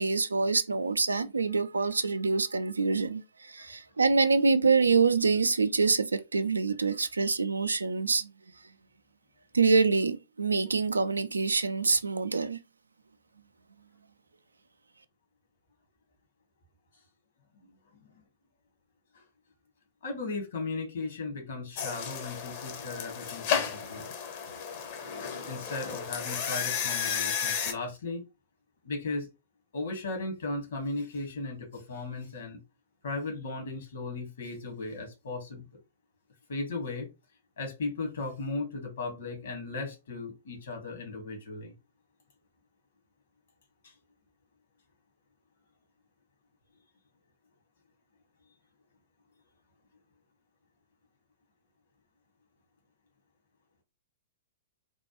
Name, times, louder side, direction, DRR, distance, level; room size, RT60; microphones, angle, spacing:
voice 1, 0.0-3.2 3.5-8.3 9.5-12.6, right 4 dB, 80° right, 0.3 m, -25 dB
voice 2, 20.0-24.1 25.4-28.2 28.8-29.3 29.7-32.6 33.0-35.6 36.5-37.1 37.6-41.7, left 3 dB, 65° left, 1.4 m, -36 dB
sound 1, 21.8-27.7, left 7 dB, 45° left, 0.8 m, -33 dB
3.3 x 2.2 x 2.9 m
figure-of-eight pair, 105°, 0 cm